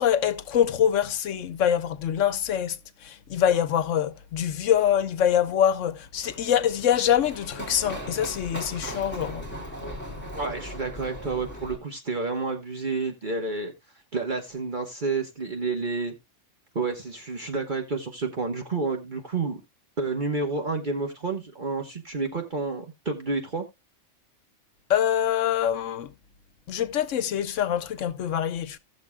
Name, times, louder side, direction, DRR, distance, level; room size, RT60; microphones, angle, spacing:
voice 1, 0.0-9.5 24.9-26.1 26.7-28.8, left 9 dB, 90° left, 1.1 m, -24 dB
Run, 6.1-11.7, equal, 10° left, 2.5 m, -38 dB
voice 2, 10.3-13.7 14.1-16.1 16.7-19.6 20.0-23.6, right 4 dB, 40° right, 1.3 m, -30 dB
16.5 x 6.6 x 2.2 m
omnidirectional pair, 1.3 m